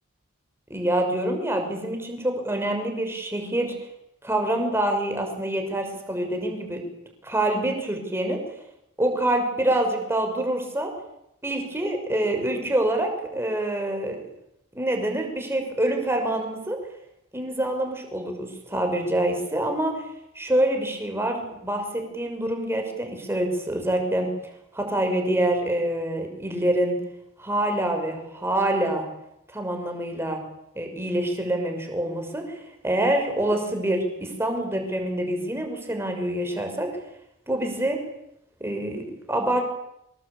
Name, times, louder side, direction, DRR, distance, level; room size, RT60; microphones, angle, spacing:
voice 1, 0.7-3.7 4.2-6.8 7.2-8.4 9.0-10.9 11.4-14.2 14.7-16.8 17.3-20.0 20.3-24.3 24.7-27.0 27.4-29.1 29.5-30.4 30.7-36.9 37.5-38.0 38.6-39.6, right 1 dB, 10° right, 3 dB, 6.1 m, -26 dB
26.0 x 22.0 x 8.7 m, 0.83 s
head